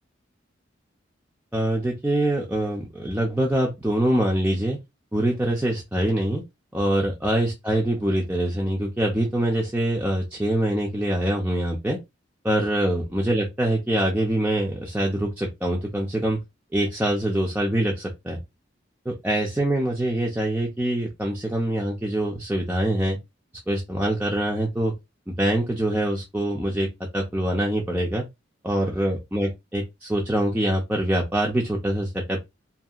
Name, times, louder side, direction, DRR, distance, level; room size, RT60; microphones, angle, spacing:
voice 1, 1.5-4.8 5.1-6.4 6.7-12.0 12.4-16.4 16.7-18.4 19.1-23.2 23.7-24.9 25.3-28.3 28.6-32.5, right 1 dB, 10° right, 0.5 m, -24 dB
2.7 x 2.6 x 2.4 m
head